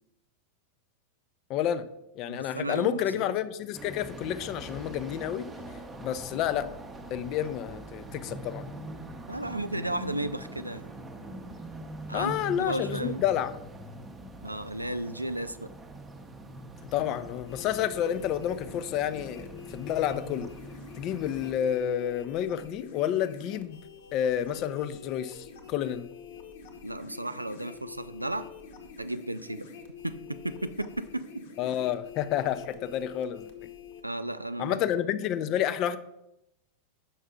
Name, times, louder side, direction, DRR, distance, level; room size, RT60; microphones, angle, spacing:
voice 1, 1.5-1.9 2.2-5.5 6.0-6.7 7.1-8.7 12.1-13.5 16.9-20.5 21.0-23.8 24.1-26.1 31.6-33.5 34.6-36.0, left 10 dB, 40° left, 13 dB, 0.5 m, -30 dB
voice 2, 2.3-3.3 9.3-10.9 12.1-13.2 14.4-15.7 26.8-28.5 29.0-29.6 30.0-31.4 34.0-34.8, right 1 dB, 85° right, 12 dB, 0.3 m, -34 dB
sound 1, 3.7-21.5, right 1 dB, 15° right, 0.7 m, -43 dB
sound 2, 17.4-34.0, left 6 dB, 55° left, 1.0 m, -47 dB
6.9 x 5.4 x 3.7 m, 0.84 s
figure-of-eight pair, 90°, 0 cm